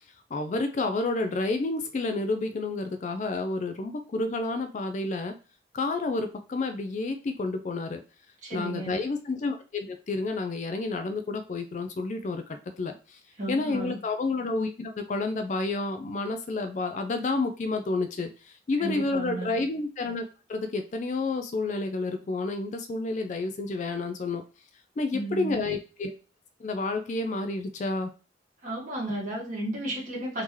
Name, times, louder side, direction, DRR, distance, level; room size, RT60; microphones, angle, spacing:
voice 1, 0.3-5.4 5.7-8.0 8.5-13.2 13.5-24.4 25.0-26.1 26.6-28.1, left 3 dB, 40° left, 7 dB, 0.3 m, -30 dB
voice 2, 8.4-9.0 13.4-14.0 18.8-19.5 25.1-25.6 28.6-30.4, right 2 dB, 40° right, -4 dB, 1.6 m, -33 dB
3.6 x 2.8 x 3.1 m, 0.34 s
head